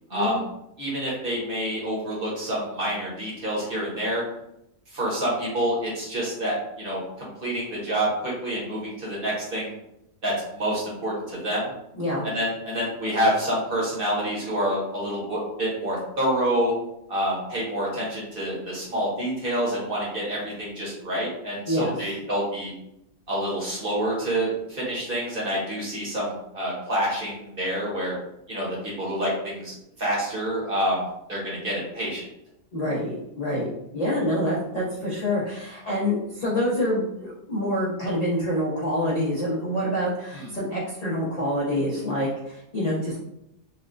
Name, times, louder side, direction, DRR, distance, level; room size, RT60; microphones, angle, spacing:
voice 1, 0.1-0.4 0.8-4.2 4.9-9.7 10.2-11.7 12.2-16.7 17.1-22.7 23.3-28.1 28.5-31.0 31.3-32.2 40.3-40.5, equal, 40° right, -5 dB, 1.0 m, -27 dB
voice 2, 21.7-22.1 32.7-43.2, equal, 70° left, -7 dB, 0.3 m, -26 dB
4.1 x 2.1 x 2.5 m, 0.81 s
omnidirectional pair, 1.7 m